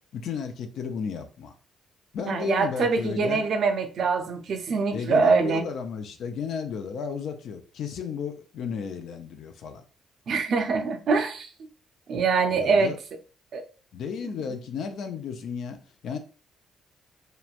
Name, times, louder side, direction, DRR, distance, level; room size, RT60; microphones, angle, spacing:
voice 1, 0.1-1.5 2.1-3.4 4.9-9.8 12.5-13.0 13.9-15.8 16.0-16.2, left 6 dB, 70° left, 6 dB, 0.5 m, -33 dB
voice 2, 2.3-5.6 10.3-11.5 12.1-12.9 13.5-13.6, right 4 dB, 60° right, 6 dB, 0.5 m, -24 dB
2.9 x 2.2 x 2.4 m, 0.37 s
cardioid pair, 90°, 0 cm